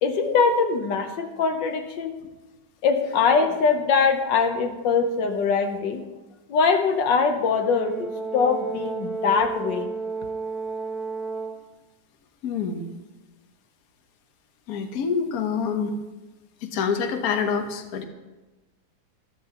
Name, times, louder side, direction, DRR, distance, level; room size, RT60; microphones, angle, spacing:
voice 1, 0.0-2.2 2.8-6.0 6.5-9.9, left 5 dB, 75° left, 6 dB, 1.5 m, -22 dB
Brass instrument, 7.5-11.7, right 4 dB, ahead, 0.7 m, -32 dB
voice 2, 12.4-13.0 14.7-16.0 16.6-18.0, left 6 dB, 60° left, 6 dB, 1.3 m, -26 dB
14.0 x 13.0 x 2.9 m, 1.1 s
omnidirectional pair, 2.0 m